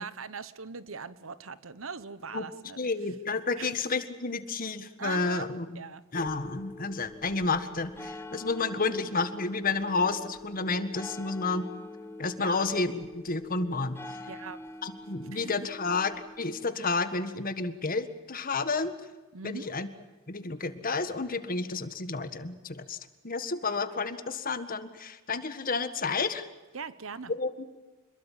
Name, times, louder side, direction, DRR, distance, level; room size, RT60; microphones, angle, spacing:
voice 1, 0.0-2.8 3.6-3.7 5.0-5.5 5.7-6.0 12.4-12.8 14.3-14.6 15.3-15.7 19.3-19.8 26.7-27.3, right 5 dB, 85° right, 14 dB, 1.2 m, -40 dB
voice 2, 2.8-5.8 6.1-11.7 12.2-14.0 14.8-18.9 19.4-19.9 20.3-23.0 23.2-26.5 27.4-27.7, left 4 dB, 45° left, 10 dB, 1.7 m, -31 dB
sound 1, 6.1-16.7, left 1 dB, 10° left, 1.0 m, -45 dB
27.0 x 22.0 x 7.5 m, 1.2 s
head